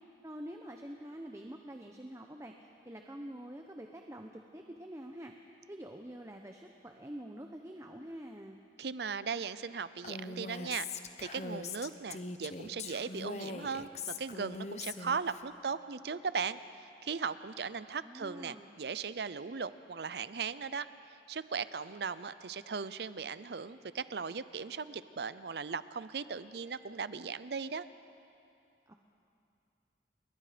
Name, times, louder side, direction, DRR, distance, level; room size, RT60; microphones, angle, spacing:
voice 1, 0.2-5.3 5.7-8.6 18.0-18.7 28.9-29.0, right 1 dB, 15° right, 3 dB, 0.8 m, -46 dB
voice 2, 8.8-10.9 11.2-20.9 21.3-27.9, right 5 dB, 65° right, 15 dB, 0.6 m, -38 dB
Female speech woman speaking, 10.0-15.4, left 4 dB, 40° left, 0.9 m, -41 dB
28.5 x 22.0 x 5.1 m, 2.7 s
head